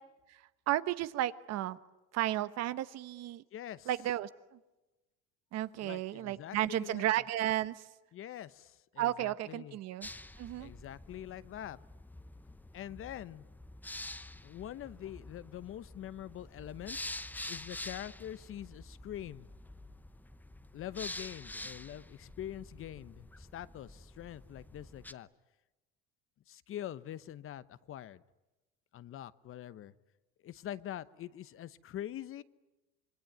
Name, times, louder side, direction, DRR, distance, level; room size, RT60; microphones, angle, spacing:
voice 1, 0.7-1.8 2.1-3.4 3.9-4.3 5.5-7.8 9.0-10.1 10.4-10.7, right 13 dB, 60° right, 14 dB, 1.2 m, -33 dB
voice 2, 3.5-3.9 5.8-7.1 8.1-9.8 10.6-11.8 12.7-13.5 14.4-17.0 17.5-19.5 20.7-25.3 26.5-28.2 28.9-29.9 30.4-32.4, left 11 dB, 45° left, 16 dB, 0.9 m, -44 dB
sound 1, 10.0-25.1, left 1 dB, 5° left, 0.8 m, -47 dB
26.5 x 22.0 x 9.3 m, 1.1 s
supercardioid pair, 110°, 30 cm